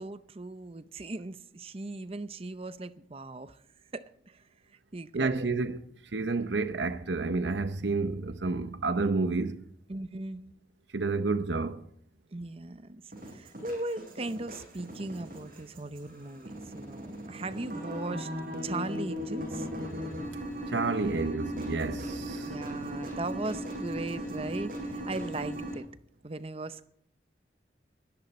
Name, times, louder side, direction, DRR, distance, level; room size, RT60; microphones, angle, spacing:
voice 1, 0.0-3.6 3.9-4.4 4.9-5.5 9.9-10.5 12.3-18.3 18.6-19.7 22.4-25.9 26.2-26.9, right 2 dB, 35° right, 0.7 m, -38 dB
voice 2, 5.1-5.8 6.1-9.6 10.9-11.8 20.7-22.6, right 3 dB, 90° right, 0.9 m, -30 dB
sound 1, 13.1-25.7, equal, 50° right, 6.4 m, -38 dB
20.5 x 14.0 x 4.3 m
head